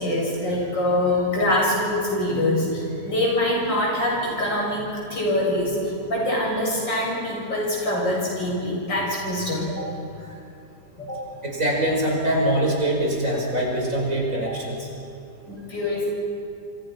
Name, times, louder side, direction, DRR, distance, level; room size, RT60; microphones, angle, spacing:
voice 1, 0.0-9.9 11.0-11.2 15.5-16.1, left 1 dB, 90° left, -3 dB, 8.3 m, -24 dB
voice 2, 11.4-14.9, right 1 dB, 45° right, -1 dB, 5.5 m, -23 dB
27.0 x 26.0 x 6.0 m, 2.7 s
omnidirectional pair, 1.9 m